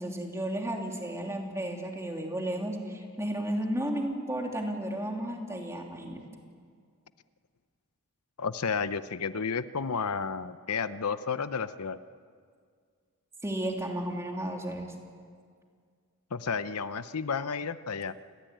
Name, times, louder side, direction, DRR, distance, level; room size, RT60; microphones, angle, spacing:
voice 1, 0.0-6.2 13.4-14.9, right 1 dB, 15° right, 1 dB, 3.1 m, -33 dB
voice 2, 8.4-12.0 16.3-18.1, left 5 dB, 80° left, 13 dB, 0.8 m, -32 dB
28.0 x 20.5 x 9.2 m, 2.1 s
head